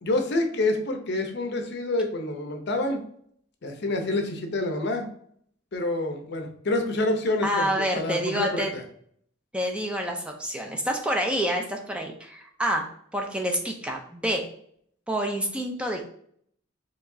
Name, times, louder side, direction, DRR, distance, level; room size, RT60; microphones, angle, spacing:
voice 1, 0.0-3.0 3.6-5.1 5.7-8.8, left 2 dB, 55° left, 5 dB, 0.6 m, -27 dB
voice 2, 7.4-8.7 9.5-12.9 13.1-14.5 15.1-16.1, equal, 5° right, 2 dB, 0.4 m, -28 dB
4.7 x 3.0 x 2.6 m, 0.65 s
head